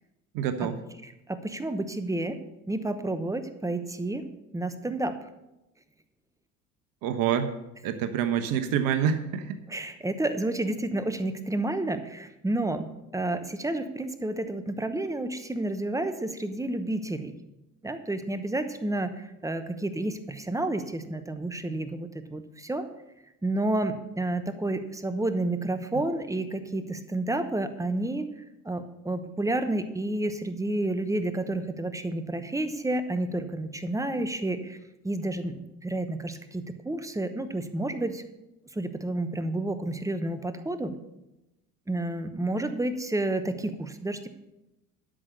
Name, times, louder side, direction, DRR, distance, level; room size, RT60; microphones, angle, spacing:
voice 1, 0.3-0.8 7.0-7.5 7.8-9.6, right 8 dB, 50° right, 9 dB, 1.1 m, -27 dB
voice 2, 1.3-2.4 2.7-4.2 4.5-5.1 9.7-17.3 17.8-22.8 23.4-28.3 28.6-34.8 35.0-38.2 38.7-40.9 41.9-44.3, right 2 dB, 5° right, 10 dB, 0.9 m, -30 dB
12.5 x 6.4 x 6.8 m, 0.92 s
figure-of-eight pair, 60°, 44 cm